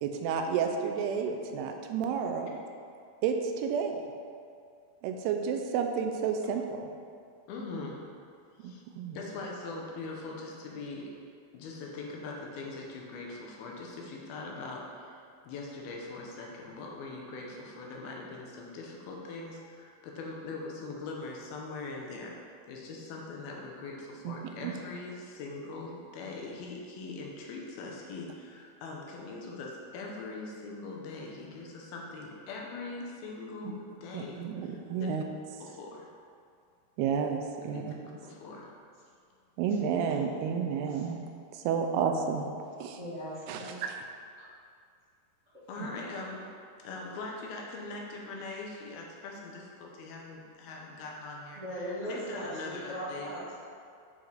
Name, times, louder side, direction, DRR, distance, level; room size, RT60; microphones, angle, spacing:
voice 1, 0.0-2.6 3.2-4.0 5.0-6.9 8.6-9.2 24.3-24.4 24.6-24.7 33.7-33.8 34.1-35.2 37.0-37.9 39.6-41.2 41.5-42.5 42.8-43.0 43.5-44.0 45.8-45.9, right 6 dB, 85° right, 4 dB, 2.6 m, -31 dB
voice 2, 7.5-8.0 8.6-8.8 9.1-11.1 11.5-22.3 22.7-35.2 35.6-36.1 37.7-37.9 38.2-38.7 44.4-44.5 45.7-46.5 46.8-53.3, left 3 dB, 75° left, -1 dB, 2.6 m, -41 dB
voice 3, 43.0-43.8 51.6-53.5, equal, 45° right, -13 dB, 0.9 m, -38 dB
9.1 x 4.5 x 4.0 m, 2.3 s
omnidirectional pair, 4.6 m